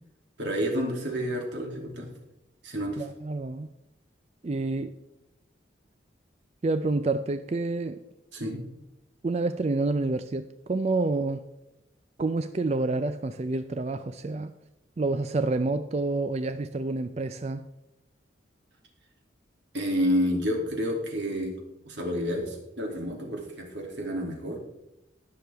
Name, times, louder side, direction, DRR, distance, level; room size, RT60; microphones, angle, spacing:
voice 1, 0.4-2.1 2.6-3.0 8.3-8.6 19.7-21.6 21.8-24.6, equal, 80° right, 0 dB, 2.7 m, -29 dB
voice 2, 3.0-3.7 4.4-5.0 6.6-8.0 9.2-11.4 12.2-14.5 15.0-17.6, right 3 dB, 35° right, 10 dB, 0.4 m, -28 dB
19.5 x 6.7 x 3.5 m, 0.90 s
head